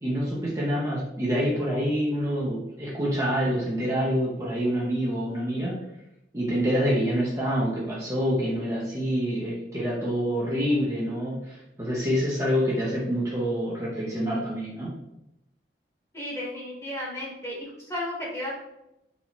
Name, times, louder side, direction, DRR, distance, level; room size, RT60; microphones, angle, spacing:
voice 1, 0.0-5.8 6.3-14.9, equal, 20° right, -6 dB, 0.7 m, -26 dB
voice 2, 16.1-18.5, left 1 dB, 15° left, -5 dB, 1.2 m, -34 dB
4.2 x 3.0 x 2.9 m, 0.85 s
head